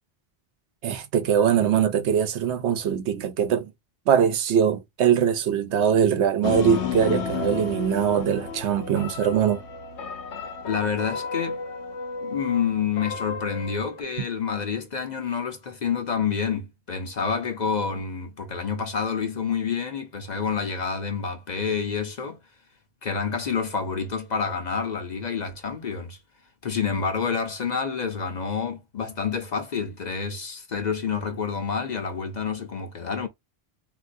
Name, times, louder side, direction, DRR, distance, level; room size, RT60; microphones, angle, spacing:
voice 1, 0.8-3.7 4.1-9.6, right 8 dB, 85° right, 1.0 m, -22 dB
sound 1, 6.4-14.0, left 6 dB, 85° left, 1.0 m, -32 dB
voice 2, 10.7-11.6 12.2-22.4 23.0-26.2 26.6-33.3, left 6 dB, 50° left, 0.7 m, -28 dB
3.6 x 2.7 x 2.5 m
omnidirectional pair, 1.1 m